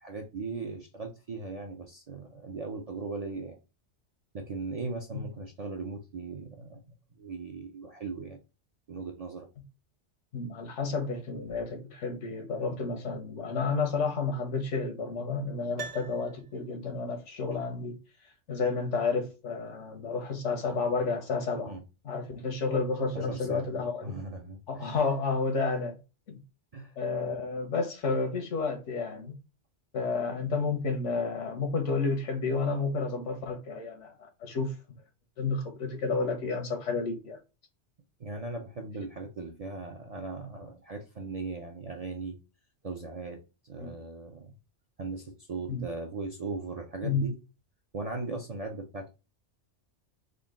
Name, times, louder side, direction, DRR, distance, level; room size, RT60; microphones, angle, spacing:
voice 1, 0.0-3.6 4.3-6.8 7.2-8.4 8.9-9.5 21.7-21.8 23.1-23.7 24.0-24.9 26.7-26.9 38.2-42.4 42.8-44.5 45.0-47.3 47.9-49.1, right 3 dB, 50° right, 0.4 m, -38 dB
voice 2, 10.3-18.0 18.5-21.8 22.0-24.1 24.7-26.0 26.3-26.4 27.0-29.4 29.9-34.7 35.4-37.4 43.8-43.9 45.7-45.8 47.0-47.3, left 4 dB, 90° left, 1.3 m, -31 dB
Piano, 15.8-17.0 17.3-17.4, right 5 dB, 75° right, 0.9 m, -44 dB
3.8 x 2.2 x 3.5 m
omnidirectional pair, 1.2 m